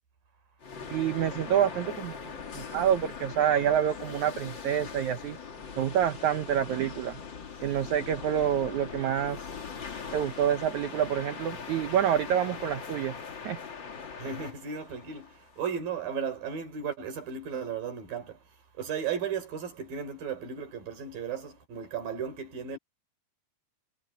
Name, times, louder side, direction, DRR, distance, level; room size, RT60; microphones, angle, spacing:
sound 1, 0.6-15.7, left 6 dB, 40° left, 1.9 m, -41 dB
voice 1, 0.9-5.4 5.8-7.2 7.6-9.4 10.1-13.1 13.4-13.6, right 9 dB, 80° right, 1.7 m, -27 dB
voice 2, 14.2-18.4 18.8-22.8, right 7 dB, 60° right, 5.7 m, -35 dB
omnidirectional pair, 4.8 m